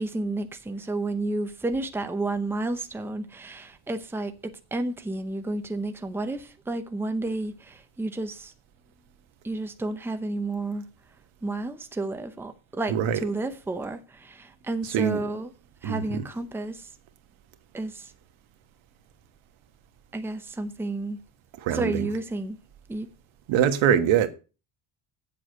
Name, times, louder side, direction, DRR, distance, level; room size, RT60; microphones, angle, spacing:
voice 1, 0.0-8.5 9.4-10.8 11.4-15.5 15.8-16.9 17.7-18.1 20.1-21.2 21.7-22.6 22.9-23.1, right 2 dB, 5° right, 0.7 m, -31 dB
voice 2, 12.9-13.2 14.8-15.2 15.8-16.2 21.6-22.1 23.5-24.3, right 9 dB, 85° right, 1.5 m, -23 dB
8.6 x 7.5 x 6.4 m
cardioid pair, 180°, 46 cm